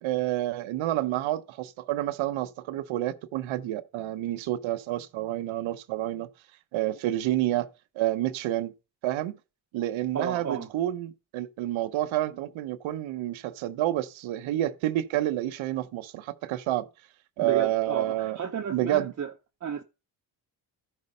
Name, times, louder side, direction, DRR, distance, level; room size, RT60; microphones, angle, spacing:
voice 1, 0.0-6.3 6.7-8.7 9.0-9.3 9.7-16.9 17.4-18.4 18.7-19.1, right 14 dB, 85° right, 1.0 m, -29 dB
voice 2, 10.1-10.7 17.4-19.3 19.6-19.8, right 7 dB, 35° right, 0.9 m, -32 dB
13.0 x 5.3 x 5.4 m
cardioid pair, 85°, 46 cm